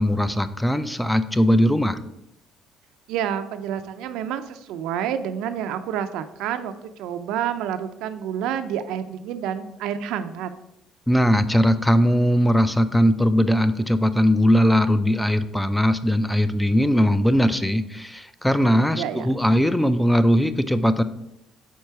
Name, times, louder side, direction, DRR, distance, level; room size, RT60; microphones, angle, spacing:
voice 1, 0.0-2.0 11.1-21.0, equal, 5° left, 12 dB, 0.4 m, -20 dB
voice 2, 3.1-10.5 18.6-19.3, right 9 dB, 80° right, 10 dB, 0.5 m, -29 dB
4.6 x 4.4 x 5.6 m, 0.83 s
supercardioid pair, 85°, 0 cm